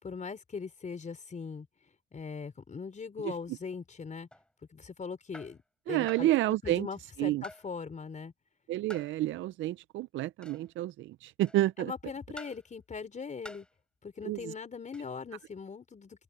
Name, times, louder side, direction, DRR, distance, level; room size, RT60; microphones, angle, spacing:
voice 1, 0.0-1.7 2.1-4.3 4.7-5.6 5.9-6.3 6.6-8.3 11.8-13.7 14.0-16.2, left 5 dB, 40° left, 4.7 m, -40 dB
sound 1, 4.3-4.5 5.3-5.6 6.1-6.4 7.4-7.7 8.9-9.2 10.4-10.7 11.4-11.7 12.4-12.6 13.4-13.7 14.9-15.1, left 1 dB, 5° left, 7.9 m, -48 dB
voice 2, 5.9-6.9 7.2-7.4 8.7-11.9 14.3-14.5, right 15 dB, 75° right, 0.4 m, -29 dB
open air
cardioid pair, 90°, 20 cm